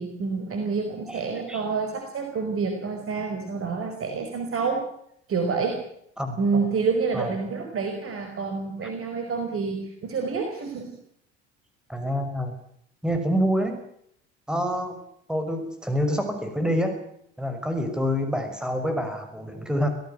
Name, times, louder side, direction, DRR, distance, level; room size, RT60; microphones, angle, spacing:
voice 1, 0.0-4.8 5.3-5.8 6.4-10.9, right 5 dB, 40° right, 5 dB, 5.1 m, -28 dB
voice 2, 1.1-1.6 6.2-6.4 7.1-7.3 8.8-8.9 11.9-12.5 13.0-13.8 14.5-15.0 15.3-17.0 17.4-19.9, equal, ahead, 6 dB, 5.7 m, -27 dB
25.5 x 17.5 x 8.1 m, 0.70 s
figure-of-eight pair, 60°, 33 cm